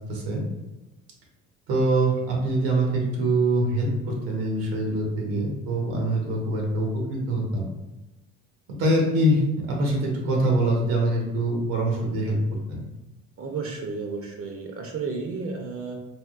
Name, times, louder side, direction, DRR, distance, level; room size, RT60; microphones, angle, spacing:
voice 1, 0.1-0.5 1.7-7.7 8.7-9.4 9.7-12.4 12.7-12.8, right 1 dB, 80° right, -1 dB, 1.0 m, -24 dB
voice 2, 13.4-16.0, right 4 dB, 40° right, 1 dB, 0.6 m, -32 dB
3.5 x 2.3 x 2.4 m, 1.0 s
supercardioid pair, 75°, 34 cm